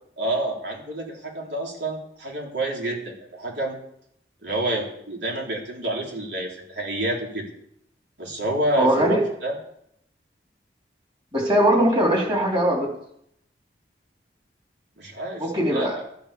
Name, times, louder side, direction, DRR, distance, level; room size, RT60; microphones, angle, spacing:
voice 1, 0.2-3.8 4.4-7.4 8.2-9.6 15.0-15.9, right 1 dB, 80° right, -1 dB, 3.8 m, -28 dB
voice 2, 8.8-9.2 11.3-12.9 15.4-16.0, right 1 dB, 25° right, -1 dB, 3.8 m, -20 dB
13.5 x 8.9 x 7.0 m, 0.72 s
head